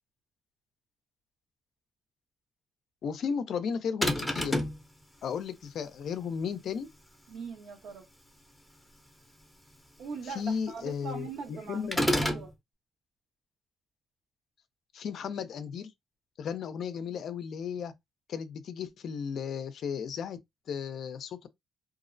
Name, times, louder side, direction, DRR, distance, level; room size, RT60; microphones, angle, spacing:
voice 1, 3.0-4.6 5.2-6.9 10.2-12.0 14.9-15.9 16.4-17.9 18.3-20.4 20.7-21.5, left 6 dB, 65° left, 0.4 m, -35 dB
sound 1, 4.0-4.8 11.9-12.5, left 1 dB, ahead, 0.6 m, -27 dB
voice 2, 7.3-8.0 10.0-12.5, right 5 dB, 75° right, 0.9 m, -41 dB
2.5 x 2.0 x 2.5 m
cardioid pair, 90°, 0 cm